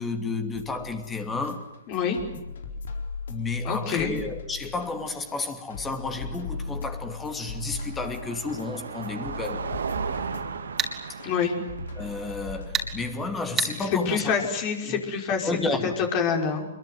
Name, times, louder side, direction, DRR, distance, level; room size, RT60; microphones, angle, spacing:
voice 1, 0.0-1.7 3.3-9.8 11.1-11.2 11.9-14.5 14.9-15.0 15.4-16.0, left 3 dB, 15° left, 2.7 m, -31 dB
sound 1, 0.5-13.5, left 4 dB, 70° left, 4.1 m, -39 dB
voice 2, 1.9-2.2 3.6-4.1 11.2-11.5 14.1-15.5 16.1-16.7, left 6 dB, 40° left, 5.5 m, -26 dB
Car passing by, 5.8-14.1, right 5 dB, 80° right, 2.6 m, -37 dB
sound 2, 10.8-10.9 12.7-12.9 13.6-13.7, right 6 dB, 20° right, 3.8 m, -26 dB
25.0 x 22.5 x 9.5 m
hypercardioid pair, 125°, 0 cm